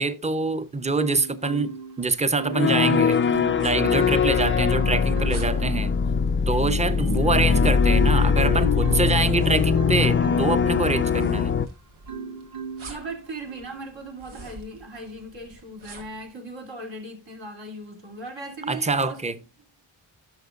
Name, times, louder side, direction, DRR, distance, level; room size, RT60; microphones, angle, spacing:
voice 1, 0.0-1.7 2.0-3.2 3.6-5.9 6.5-11.5 18.7-19.4, right 3 dB, 15° right, 0.7 m, -25 dB
Marimba xylophone, 1.0-2.0 2.4-4.2 4.7-5.6 6.1-11.6 12.1-12.9 13.5-13.7, right 2 dB, 50° right, 1.8 m, -35 dB
sound 1, 2.5-11.7, left 6 dB, 30° left, 0.4 m, -21 dB
sound 2, 2.9-16.3, right 3 dB, 90° right, 1.8 m, -49 dB
voice 2, 12.9-19.4, right 2 dB, 70° right, 3.2 m, -38 dB
12.0 x 6.3 x 2.6 m
cardioid pair, 65°, 47 cm